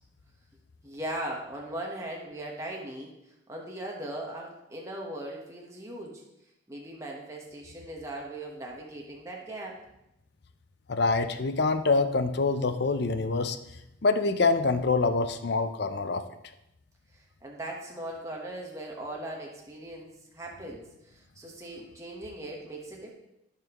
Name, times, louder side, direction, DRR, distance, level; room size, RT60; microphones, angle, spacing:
voice 1, 0.8-3.1 3.5-6.2 6.7-9.8 17.1-23.1, right 1 dB, 15° right, -2 dB, 1.1 m, -39 dB
voice 2, 10.9-13.6 14.0-16.2, left 3 dB, 55° left, 9 dB, 0.6 m, -25 dB
14.0 x 5.7 x 3.0 m, 0.85 s
head